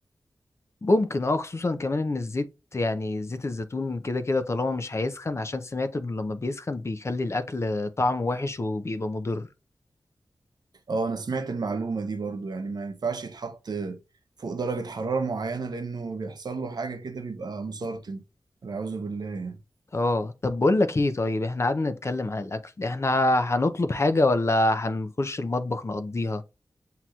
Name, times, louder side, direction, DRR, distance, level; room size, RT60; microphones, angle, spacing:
voice 1, 0.8-9.5 19.9-26.4, left 2 dB, 40° left, 0.5 m, -26 dB
voice 2, 10.9-14.0 14.4-18.2 18.6-19.6, right 4 dB, 65° right, 0.7 m, -31 dB
7.6 x 2.8 x 2.4 m
wide cardioid pair, 95°, 7 cm